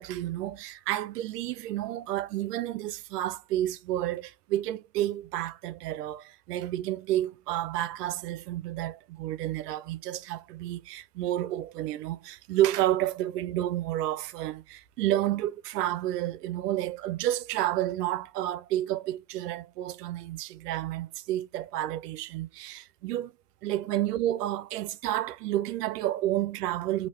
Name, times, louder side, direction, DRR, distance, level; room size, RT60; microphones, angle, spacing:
voice 1, 0.0-23.3 23.6-27.1, right 13 dB, 80° right, 0.6 m, -30 dB
3.0 x 2.8 x 2.9 m
hypercardioid pair, 95°, 47 cm